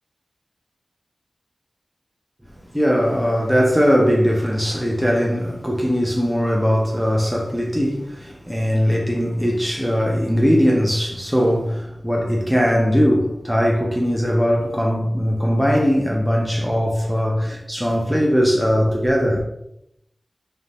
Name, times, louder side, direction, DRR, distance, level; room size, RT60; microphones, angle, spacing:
voice 1, 2.7-19.4, equal, 5° right, 0.5 m, -20 dB
2.5 x 2.1 x 3.2 m
wide cardioid pair, 55°, 0 cm